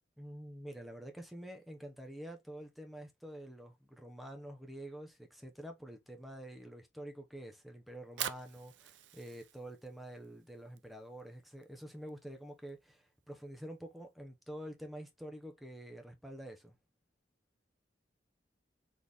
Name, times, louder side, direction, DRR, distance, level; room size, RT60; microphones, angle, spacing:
voice 1, 0.2-16.8, right 1 dB, ahead, 0.9 m, -48 dB
Fire, 7.9-14.1, right 11 dB, 80° right, 0.5 m, -47 dB
4.2 x 3.2 x 3.5 m
head